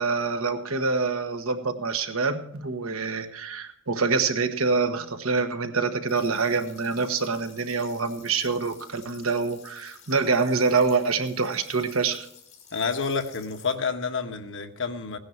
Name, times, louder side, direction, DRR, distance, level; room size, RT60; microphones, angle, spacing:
voice 1, 0.0-12.2, right 4 dB, 85° right, 8 dB, 1.3 m, -26 dB
sound 1, 6.1-13.7, left 6 dB, 35° left, 4.2 m, -51 dB
voice 2, 12.7-15.2, left 5 dB, 65° left, 6 dB, 1.3 m, -29 dB
17.5 x 10.5 x 4.4 m, 0.68 s
head